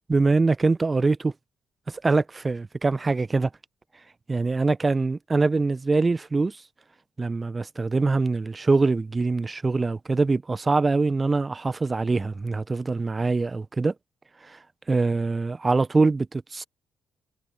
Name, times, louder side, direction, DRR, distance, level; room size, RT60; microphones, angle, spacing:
voice 1, 0.1-1.3 1.9-3.5 4.3-6.6 7.2-13.9 14.4-14.6 14.9-16.6, right 3 dB, 30° right, 1.0 m, -23 dB
hypercardioid pair, 40°, 0 cm